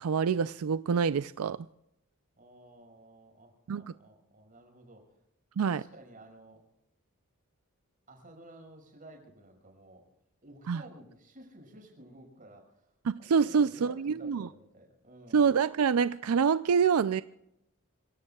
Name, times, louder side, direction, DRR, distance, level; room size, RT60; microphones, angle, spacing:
voice 1, 0.0-1.7 3.7-3.8 5.6-5.8 10.7-10.8 13.0-14.5 15.3-17.2, right 6 dB, 85° right, 14 dB, 0.4 m, -26 dB
voice 2, 2.4-5.1 5.7-6.6 8.1-10.0 10.4-15.5, right 1 dB, 40° right, 2 dB, 5.9 m, -53 dB
27.5 x 17.0 x 2.3 m, 0.83 s
head